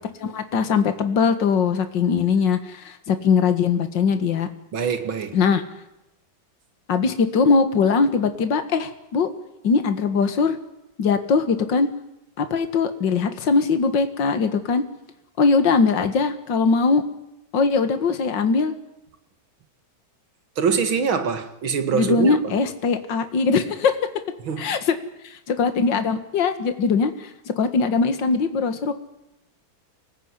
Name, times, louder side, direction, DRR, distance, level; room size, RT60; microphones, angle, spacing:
voice 1, 0.2-4.5 5.3-5.6 6.9-9.3 9.6-10.6 11.0-11.9 12.4-14.8 15.4-17.0 17.5-18.7 21.9-24.0 24.6-24.8 25.2-27.3 27.6-28.9, left 5 dB, 65° left, 2.4 m, -21 dB
voice 2, 4.7-5.4 20.6-22.5 24.4-24.7, right 6 dB, 90° right, 2.8 m, -24 dB
25.5 x 19.0 x 9.8 m
omnidirectional pair, 2.1 m